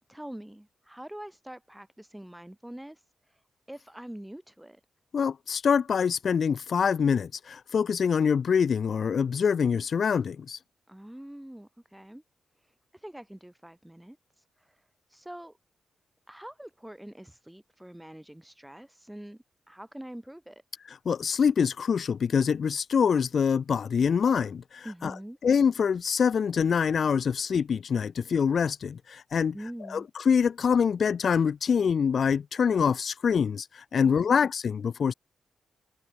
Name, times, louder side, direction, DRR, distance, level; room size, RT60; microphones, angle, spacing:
voice 1, 0.1-3.0 3.7-4.8 10.9-12.2 12.9-14.2 15.1-15.6 16.3-20.6 24.8-25.4 29.5-30.1 33.9-34.4, right 1 dB, 5° right, 7.2 m, -44 dB
voice 2, 5.1-10.6 20.9-25.1 25.4-29.5 29.9-35.1, left 6 dB, 55° left, 1.2 m, -25 dB
cardioid pair, 115°, 0 cm